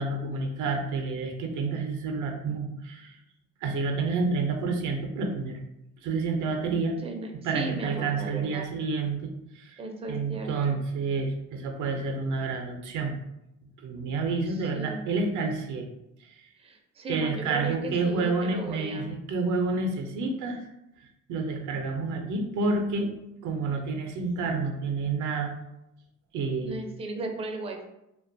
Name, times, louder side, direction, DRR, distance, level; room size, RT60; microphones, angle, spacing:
voice 1, 0.0-3.2 3.6-5.6 6.0-7.0 7.3-9.8 10.1-13.1 13.8-15.9 16.2-16.3 17.1-20.6 21.3-23.1 23.4-25.5 26.3-26.8, right 3 dB, 80° right, 4 dB, 0.5 m, -29 dB
voice 2, 7.0-8.7 9.8-10.8 14.0-14.1 14.5-15.1 16.6-19.1 26.6-27.8, right 3 dB, 20° right, 2 dB, 0.4 m, -36 dB
2.4 x 2.2 x 2.5 m, 0.85 s
cardioid pair, 90°, 30 cm